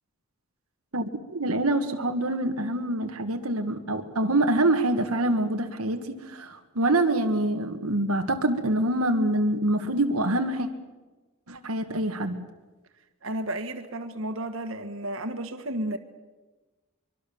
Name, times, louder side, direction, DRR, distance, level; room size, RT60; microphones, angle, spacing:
voice 1, 0.9-10.7 11.5-12.4, right 1 dB, 90° right, 1.7 m, -25 dB
voice 2, 13.2-16.0, right 1 dB, 65° right, 1.8 m, -32 dB
24.0 x 23.5 x 7.1 m
head